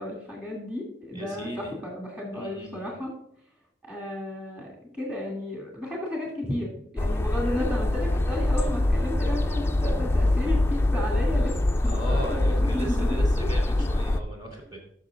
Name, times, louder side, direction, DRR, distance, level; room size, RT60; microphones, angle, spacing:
voice 1, 0.0-3.1 3.9-6.7 6.9-11.6 11.8-13.5, left 1 dB, 5° right, -3 dB, 2.3 m, -33 dB
voice 2, 1.1-1.7 2.3-2.9 6.5-6.6 11.8-14.8, right 1 dB, 25° right, -1 dB, 2.3 m, -36 dB
sound 1, 7.0-14.2, left 1 dB, 15° left, 0.3 m, -24 dB
13.0 x 6.4 x 2.4 m, 0.71 s
head